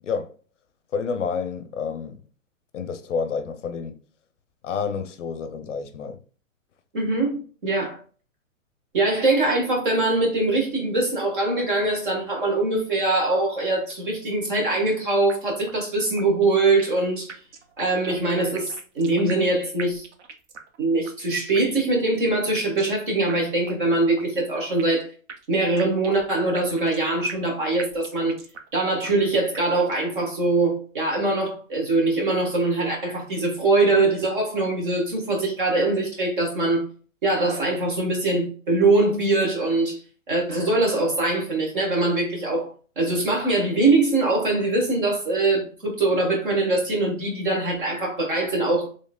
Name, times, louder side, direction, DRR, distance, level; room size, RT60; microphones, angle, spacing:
voice 1, 0.0-0.3 0.9-2.2 2.7-4.0 4.6-6.2, left 5 dB, 60° left, 0.6 m, -29 dB
voice 2, 6.9-8.0 8.9-17.3 17.8-20.0 20.8-25.1 25.5-28.4 28.7-36.9 37.2-40.0 40.3-42.7 43.0-48.9, right 2 dB, 40° right, 1.4 m, -22 dB
sound 1, 14.5-15.0 15.3-15.4 15.7-15.8 16.2-17.0 17.3-19.5 19.8-20.8 21.0-21.1 21.5-22.1 22.5-23.0 23.3-23.4 23.7-23.8 24.2-25.0 25.3-27.5 27.8-28.8 29.0-29.1 29.5-30.1, right 5 dB, 60° right, 0.7 m, -41 dB
4.4 x 3.2 x 2.2 m
hypercardioid pair, 180°, 40 cm